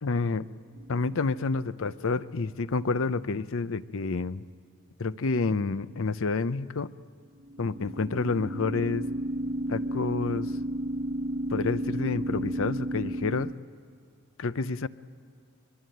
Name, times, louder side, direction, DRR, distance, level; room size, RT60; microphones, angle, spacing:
voice 1, 0.0-0.5 0.9-4.4 5.0-6.9 7.6-9.1 9.7-10.5 11.5-13.5 14.4-14.9, left 4 dB, 60° left, 15 dB, 0.6 m, -29 dB
sound 1, 0.8-1.3 7.4-13.5, right 1 dB, 65° right, 1.1 m, -32 dB
24.0 x 22.5 x 9.2 m, 2.2 s
head